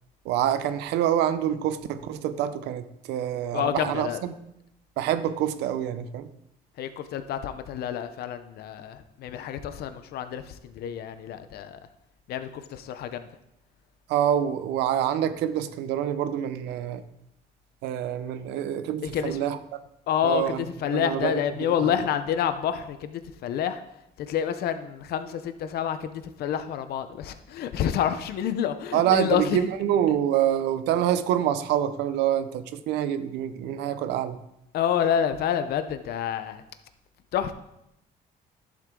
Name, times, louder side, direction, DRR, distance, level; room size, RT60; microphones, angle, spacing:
voice 1, 0.2-4.3 5.0-6.3 14.1-17.0 17.8-19.6 20.2-21.3 28.9-34.4, right 10 dB, 85° right, 12 dB, 0.8 m, -26 dB
voice 2, 3.5-4.2 6.8-11.8 12.3-13.3 19.0-19.4 20.1-23.8 24.3-29.6 30.1-30.2 34.7-36.6 37.3-37.5, left 9 dB, 70° left, 10 dB, 0.8 m, -28 dB
11.5 x 7.5 x 3.8 m, 0.83 s
cardioid pair, 110°, 17 cm